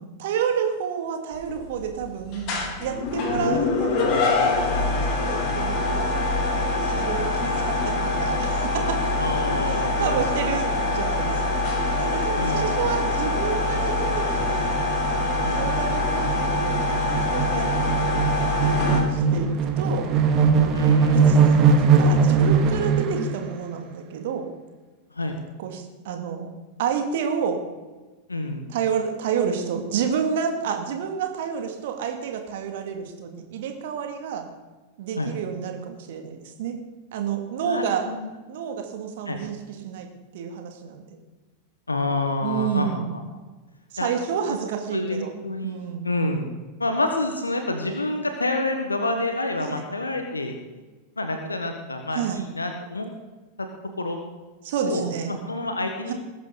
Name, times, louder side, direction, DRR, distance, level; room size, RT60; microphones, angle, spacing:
voice 1, 0.0-9.1 9.6-11.7 11.9-14.9 15.5-18.2 18.6-19.5 19.8-20.1 21.1-24.5 25.6-26.5 26.8-27.6 28.7-34.5 35.0-36.8 37.1-38.1 38.5-40.1 40.3-41.2 42.4-43.1 43.9-45.3 45.6-46.1 49.6-49.8 52.1-52.4 54.6-55.4 56.1-56.2, right 7 dB, 55° right, 4 dB, 2.4 m, -30 dB
sound 1, 1.3-19.0, left 2 dB, 40° left, 3.8 m, -24 dB
voice 2, 3.3-3.7 9.2-10.3 12.4-12.8 15.4-15.6 20.7-21.4 25.1-25.4 28.3-28.7 35.2-35.3 37.6-38.3 39.3-39.4 41.9-43.0 44.0-44.1 44.9-46.5 46.8-50.6 51.2-53.1 53.6-53.7 54.0-54.2 54.8-56.1, left 2 dB, 80° left, 5 dB, 1.4 m, -28 dB
sound 2, 12.9-13.0 13.3-13.4 13.7-23.4, right 5 dB, 35° right, 1.9 m, -21 dB
20.5 x 11.0 x 4.1 m, 1.3 s
figure-of-eight pair, 90°, 0 cm